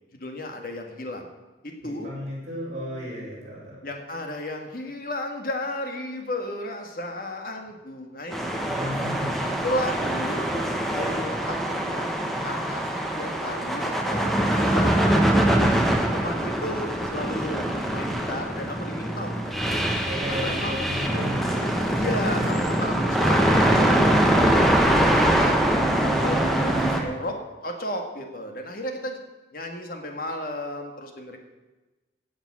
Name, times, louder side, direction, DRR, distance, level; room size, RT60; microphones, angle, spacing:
voice 1, 0.1-1.3 1.6-2.1 3.8-8.7 9.6-10.5 10.9-12.1 12.4-15.6 16.1-20.8 21.9-25.5 25.9-27.4 27.6-29.2 29.5-31.4, left 1 dB, 50° left, 3 dB, 1.8 m, -34 dB
voice 2, 1.8-3.8 8.6-9.7 12.3-12.7 20.0-21.7 22.4-22.7 26.6-27.2, equal, 40° right, -5 dB, 5.4 m, -34 dB
sound 1, 8.3-27.0, right 1 dB, ahead, 1.2 m, -23 dB
16.0 x 7.4 x 6.2 m, 1.2 s
head